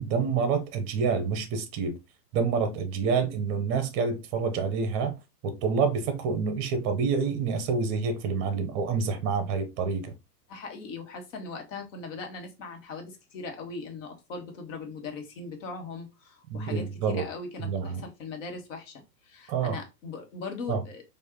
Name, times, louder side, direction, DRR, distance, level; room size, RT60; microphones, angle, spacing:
voice 1, 0.0-2.0 2.3-5.2 5.4-10.1 16.5-17.3 17.6-18.0 19.5-19.8 20.7-20.8, right 5 dB, 30° right, 0.8 m, -27 dB
voice 2, 10.5-21.0, left 4 dB, 50° left, 1.4 m, -39 dB
4.5 x 2.7 x 2.9 m
hypercardioid pair, 115°, 50 cm